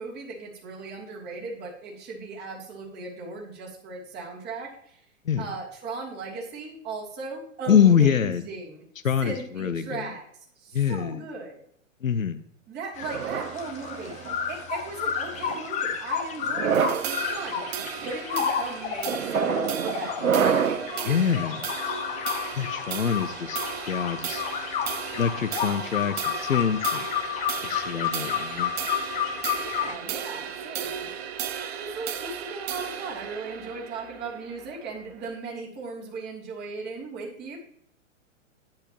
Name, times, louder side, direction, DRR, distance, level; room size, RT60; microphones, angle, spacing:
voice 1, 0.0-5.0 5.4-8.8 9.2-10.3 10.6-11.6 12.7-17.6 18.0-21.2 29.5-31.1 31.8-37.6, right 3 dB, 25° right, -1 dB, 2.9 m, -37 dB
voice 2, 7.7-8.4 9.0-10.0 10.7-11.2 12.0-12.4 21.0-21.6 22.5-23.6 23.9-24.4 25.1-27.1 27.6-28.7, left 8 dB, 80° left, 10 dB, 0.7 m, -24 dB
sound 1, 12.9-29.9, left 8 dB, 20° left, 1.1 m, -31 dB
sound 2, 13.0-14.4 15.2-15.6 16.4-17.1 17.8-18.1 19.1-20.9, right 7 dB, 90° right, 0.6 m, -27 dB
sound 3, 16.7-35.3, right 9 dB, 50° right, 0.8 m, -36 dB
10.5 x 9.7 x 2.9 m, 0.67 s
figure-of-eight pair, 110°, 40 cm